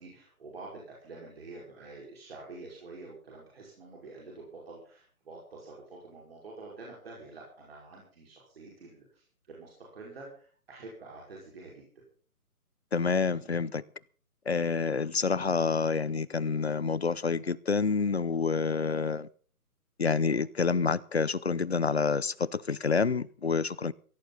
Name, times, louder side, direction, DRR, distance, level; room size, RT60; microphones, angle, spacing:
voice 1, 0.0-11.8, right 3 dB, 40° right, 5.3 m, -47 dB
voice 2, 12.9-13.8 14.5-19.3 20.0-23.9, left 5 dB, 45° left, 0.6 m, -28 dB
16.5 x 16.5 x 4.1 m
hypercardioid pair, 175°, 45 cm